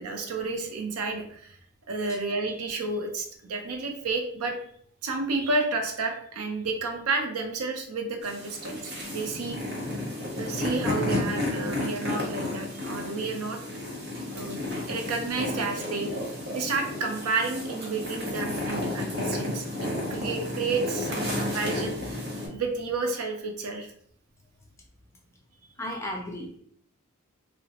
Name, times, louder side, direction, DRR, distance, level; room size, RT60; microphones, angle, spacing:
voice 1, 0.0-1.6 1.9-4.6 5.0-9.6 10.4-13.6 14.3-14.6 14.9-16.1 16.5-23.9, right 3 dB, 80° right, 4 dB, 0.5 m, -31 dB
sound 1, 8.2-22.5, left 2 dB, 45° right, 0.8 m, -32 dB
voice 2, 25.8-26.6, left 1 dB, 10° left, -1 dB, 0.3 m, -35 dB
2.9 x 2.0 x 2.8 m, 0.63 s
head